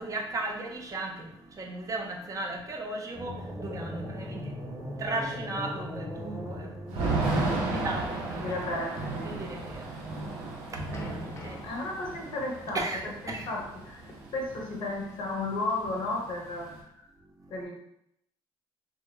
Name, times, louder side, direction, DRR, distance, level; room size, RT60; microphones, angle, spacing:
voice 1, 0.0-8.6 9.2-11.7 12.7-13.5 14.1-14.3 17.2-17.6, right 2 dB, 35° right, 1 dB, 0.5 m, -37 dB
sound 1, 3.1-7.4, equal, 5° right, 0.8 m, -38 dB
Thunder / Rain, 6.9-14.8 15.1-15.2 15.4-16.8, right 2 dB, 90° right, 0.5 m, -33 dB
voice 2, 8.4-9.3 11.6-17.0 17.5-17.8, left 2 dB, 65° left, 0 dB, 0.7 m, -34 dB
sound 2, 10.7-17.1, left 1 dB, 30° left, 0.5 m, -49 dB
2.2 x 2.0 x 3.0 m, 0.75 s
cardioid pair, 90°, 10 cm